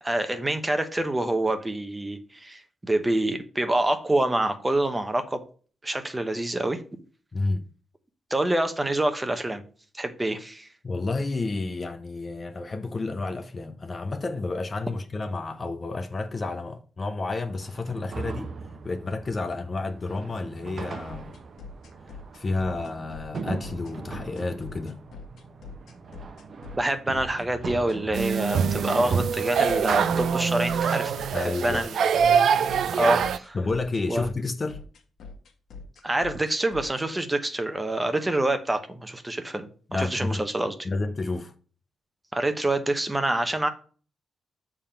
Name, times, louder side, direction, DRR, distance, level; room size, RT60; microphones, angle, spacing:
voice 1, 0.0-5.4 5.8-6.8 8.3-9.6 9.9-10.7 26.8-32.0 32.4-33.6 34.1-34.3 36.0-40.9 42.3-43.7, right 1 dB, 15° right, 0.9 m, -26 dB
voice 2, 7.3-7.7 10.8-18.5 18.8-21.3 22.3-25.0 31.3-31.8 33.5-34.8 39.9-40.4 40.8-41.5, left 3 dB, 30° left, 0.7 m, -30 dB
sound 1, 17.6-30.3, right 4 dB, 45° right, 0.8 m, -40 dB
sound 2, 21.1-37.0, left 4 dB, 75° left, 1.5 m, -43 dB
sound 3, 28.1-33.4, right 7 dB, 70° right, 0.4 m, -24 dB
7.0 x 3.7 x 5.7 m
cardioid pair, 130°, 0 cm